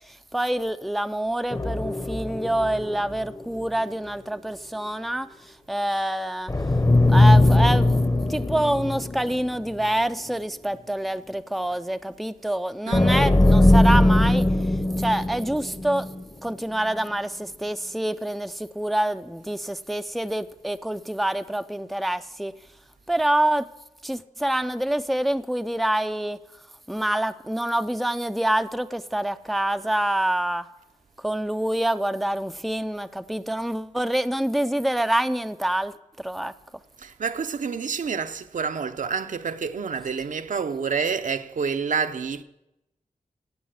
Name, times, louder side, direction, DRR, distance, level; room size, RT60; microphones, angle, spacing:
voice 1, 0.1-6.5 7.1-14.5 15.0-16.1 16.4-22.5 23.1-23.7 24.0-26.4 26.9-30.7 31.2-36.5, right 1 dB, ahead, 0.4 m, -26 dB
sound 1, 1.5-3.6 3.9-4.0 6.5-9.9 10.3-10.4 12.9-16.2, left 2 dB, 25° left, 0.9 m, -20 dB
voice 2, 12.9-13.3 37.0-42.4, right 6 dB, 75° right, 0.7 m, -28 dB
16.0 x 8.5 x 7.6 m
wide cardioid pair, 90°, 13 cm